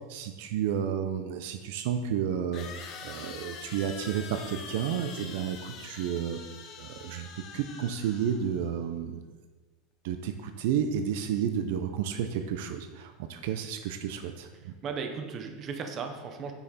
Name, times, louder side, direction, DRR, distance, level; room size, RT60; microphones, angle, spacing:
voice 1, 0.1-6.4 6.8-7.3 7.5-9.2 10.0-14.7, right 8 dB, 60° right, 8 dB, 0.5 m, -31 dB
sound 1, 2.5-8.7, left 6 dB, 35° left, 0.7 m, -44 dB
voice 2, 14.5-16.5, right 5 dB, 25° right, 5 dB, 0.7 m, -36 dB
8.8 x 5.6 x 4.2 m, 1.3 s
supercardioid pair, 170°, 0 cm